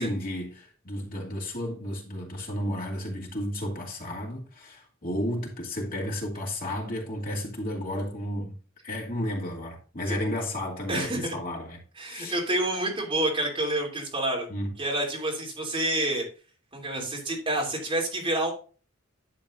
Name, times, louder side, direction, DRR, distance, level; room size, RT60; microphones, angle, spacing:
voice 1, 0.0-8.5 8.8-12.4 14.5-14.7, left 1 dB, 45° left, 2.5 m, -32 dB
voice 2, 10.9-11.3 12.0-14.5 14.8-16.2 16.7-18.5, right 1 dB, 25° right, 3.0 m, -28 dB
11.0 x 7.5 x 2.6 m
head